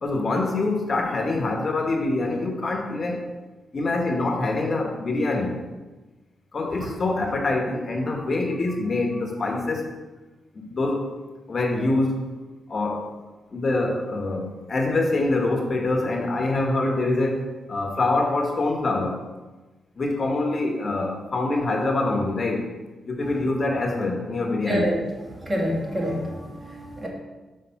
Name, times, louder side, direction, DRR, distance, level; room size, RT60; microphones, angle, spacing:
voice 1, 0.0-3.2 3.7-5.6 6.5-9.9 10.5-11.1 11.5-12.3 12.7-13.1 13.5-19.2 20.0-22.7 23.1-24.9, left 2 dB, 50° left, 2 dB, 1.0 m, -25 dB
voice 2, 24.7-25.0 25.4-27.1, equal, 30° right, -3 dB, 2.0 m, -27 dB
5.5 x 3.4 x 5.7 m, 1.2 s
cardioid pair, 55°, 0 cm